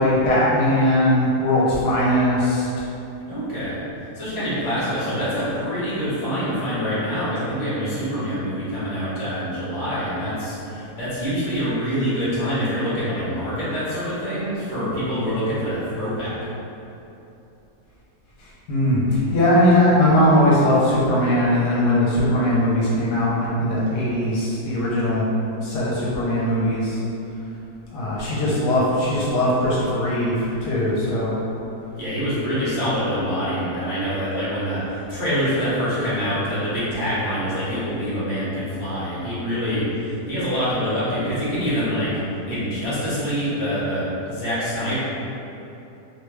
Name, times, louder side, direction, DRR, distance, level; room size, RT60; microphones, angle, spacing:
voice 1, 0.0-2.8 18.7-25.3 25.6-27.0 27.9-31.3, left 1 dB, 75° left, -7 dB, 1.3 m, -20 dB
voice 2, 3.3-3.8 4.1-16.4 32.0-42.1 42.5-45.0, equal, 25° left, -11 dB, 0.8 m, -25 dB
3.1 x 2.2 x 3.2 m, 2.9 s
omnidirectional pair, 1.8 m